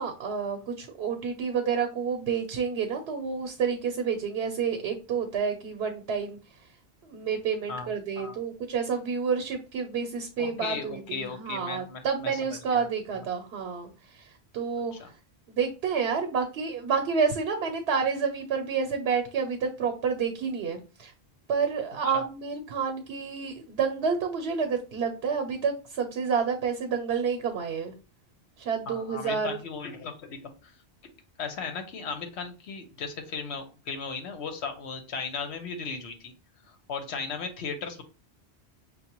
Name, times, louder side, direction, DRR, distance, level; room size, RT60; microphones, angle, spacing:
voice 1, 0.0-6.4 7.0-14.3 14.5-14.9 15.5-21.1 21.5-27.9 28.6-29.6, right 6 dB, 80° right, 5 dB, 0.9 m, -29 dB
voice 2, 7.7-8.4 10.4-12.9 13.1-13.2 14.9-15.1 22.0-22.2 28.9-30.7 31.4-36.3 36.7-38.0, left 5 dB, 85° left, 6 dB, 1.0 m, -36 dB
5.4 x 2.1 x 2.9 m, 0.32 s
omnidirectional pair, 1.1 m